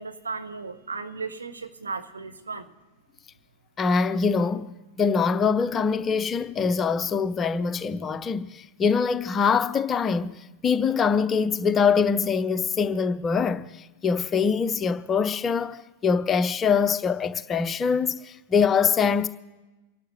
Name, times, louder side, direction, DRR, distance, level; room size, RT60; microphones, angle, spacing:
voice 1, 0.0-2.7, right 4 dB, 75° right, 1.0 m, -35 dB
voice 2, 3.8-19.3, left 6 dB, 25° left, 0.7 m, -24 dB
28.0 x 11.5 x 3.1 m
figure-of-eight pair, 90°, 0 cm